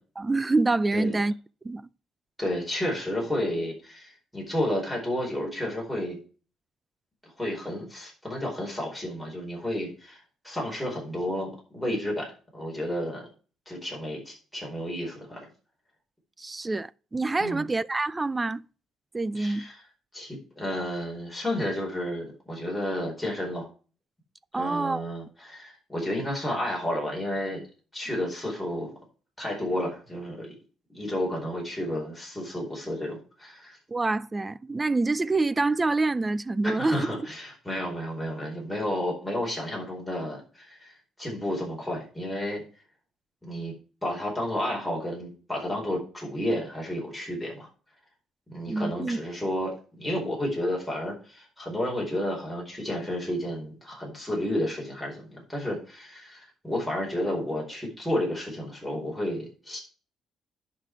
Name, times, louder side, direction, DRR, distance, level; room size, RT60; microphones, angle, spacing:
voice 1, 0.2-1.3 1.6-1.9 16.4-18.6 19.1-19.7 24.5-25.0 33.9-37.1 48.7-49.2, right 3 dB, 15° right, 0.4 m, -26 dB
voice 2, 2.4-6.2 7.4-13.3 13.7-15.5 17.4-17.7 19.3-19.8 20.1-23.7 24.5-27.6 27.9-28.9 29.4-30.5 30.9-33.8 36.6-40.9 41.2-42.6 43.4-43.7 44.0-47.7 48.5-59.8, left 1 dB, ahead, 4.5 m, -31 dB
11.0 x 5.9 x 4.7 m
cardioid pair, 140°, 0 cm